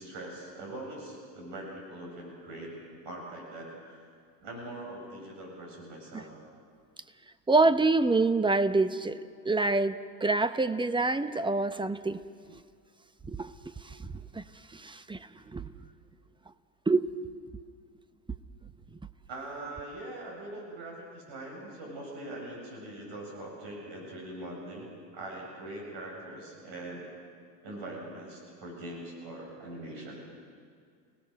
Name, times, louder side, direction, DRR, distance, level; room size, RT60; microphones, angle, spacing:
voice 1, 0.0-2.8 3.0-4.1 4.4-6.3 19.3-27.1 27.6-30.2, right 1 dB, 55° right, -1 dB, 7.7 m, -42 dB
voice 2, 7.5-12.2 12.5-12.6 13.3-14.4 14.7-15.7 16.9-17.1, right 3 dB, 10° right, 13 dB, 0.7 m, -27 dB
29.5 x 18.0 x 6.6 m, 2.1 s
hypercardioid pair, 95°, 49 cm